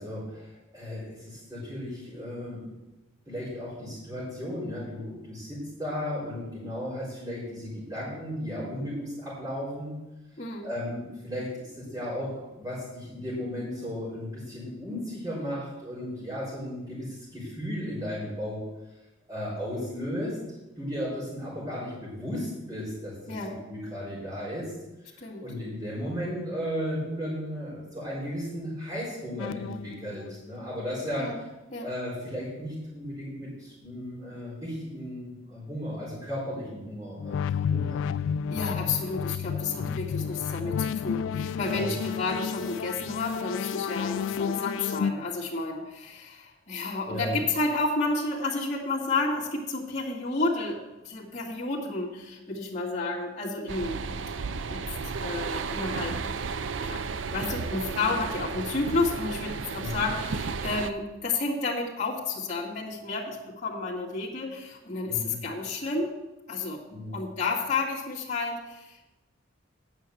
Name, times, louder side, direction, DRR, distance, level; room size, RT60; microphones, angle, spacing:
voice 1, 0.0-2.6 3.3-10.0 10.6-18.6 19.3-20.4 20.8-23.4 23.7-24.7 25.4-31.3 31.8-37.4 37.7-38.0 39.7-39.9 41.6-41.9 47.0-47.4 59.8-60.1 65.0-65.4 66.9-67.1, equal, 20° right, -12 dB, 4.0 m, -35 dB
voice 2, 10.4-10.7 23.3-23.6 25.2-25.4 31.2-31.4 31.7-31.9 38.5-54.0 54.7-54.8 55.2-56.2 56.5-57.1 57.3-66.1 66.5-66.8 67.1-69.2, left 3 dB, 40° left, -6 dB, 2.1 m, -31 dB
sound 1, 29.4-30.3 37.2-45.1, left 7 dB, 80° left, 0.3 m, -31 dB
sound 2, 53.7-60.9, right 5 dB, 75° right, 0.5 m, -33 dB
9.4 x 5.8 x 7.8 m, 1.0 s
head